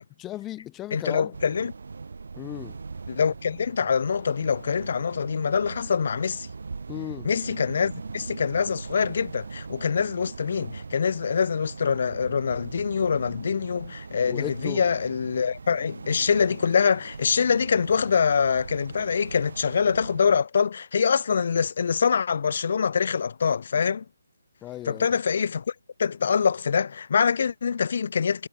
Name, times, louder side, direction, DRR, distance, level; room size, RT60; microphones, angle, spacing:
voice 1, 0.2-1.3 2.3-2.8 6.9-7.3 14.3-14.8 24.6-25.2, left 14 dB, 15° left, 0.5 m, -36 dB
voice 2, 0.9-1.7 3.1-6.5 7.2-24.0 24.9-25.7 26.0-28.5, left 6 dB, 55° left, 0.7 m, -24 dB
sound 1, 1.3-20.4, right 4 dB, 70° right, 1.2 m, -40 dB
figure-of-eight pair, 155°, 0 cm